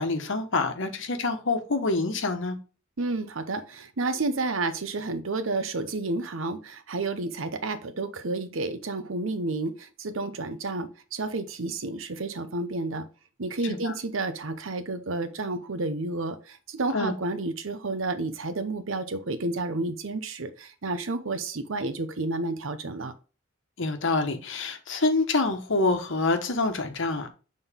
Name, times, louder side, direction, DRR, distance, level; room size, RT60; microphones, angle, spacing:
voice 1, 0.0-2.6 13.6-13.9 16.9-17.1 23.8-27.3, left 3 dB, 65° left, 1.2 m, -26 dB
voice 2, 3.0-13.1 13.4-23.1, right 2 dB, 70° right, 0.9 m, -31 dB
7.1 x 3.9 x 3.6 m
head